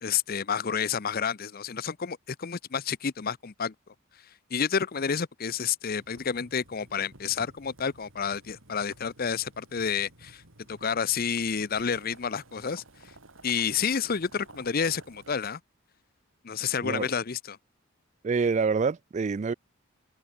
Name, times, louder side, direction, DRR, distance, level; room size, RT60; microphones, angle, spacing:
voice 1, 0.0-3.7 4.5-10.4 10.7-12.8 13.4-15.6 16.4-17.6, left 6 dB, 45° left, 0.6 m, -30 dB
Boiling, 6.0-15.3, right 2 dB, 65° right, 6.6 m, -54 dB
voice 2, 18.2-19.5, right 5 dB, 35° right, 0.3 m, -26 dB
head